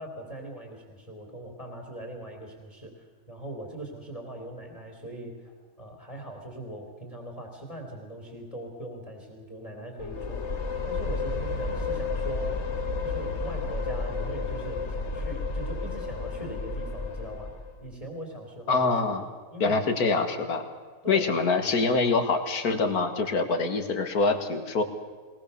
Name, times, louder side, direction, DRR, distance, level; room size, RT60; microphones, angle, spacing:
voice 1, 0.0-10.5 10.8-12.7 13.0-17.5 17.8-19.0 19.5-19.8 21.0-21.3, right 1 dB, 20° left, 2 dB, 3.1 m, -40 dB
sound 1, 10.0-17.8, left 3 dB, 50° left, 1.5 m, -32 dB
voice 2, 18.7-19.3 19.6-20.7 21.1-24.8, left 3 dB, 85° left, 8 dB, 2.3 m, -25 dB
22.0 x 19.5 x 6.8 m, 1.5 s
omnidirectional pair, 1.6 m